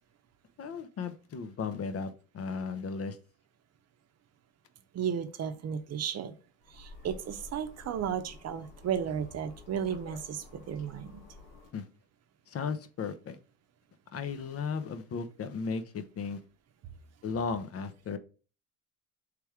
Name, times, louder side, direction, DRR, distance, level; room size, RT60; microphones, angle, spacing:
voice 1, 0.6-3.2 11.7-11.9 12.5-13.4 14.1-16.4 17.2-18.2, left 5 dB, 45° left, 0.7 m, -35 dB
voice 2, 4.9-6.4 6.7-11.2, right 8 dB, 50° right, 0.7 m, -34 dB
sound 1, 6.6-11.7, left 3 dB, 90° left, 1.7 m, -51 dB
3.4 x 3.3 x 4.6 m
cardioid pair, 90°, 33 cm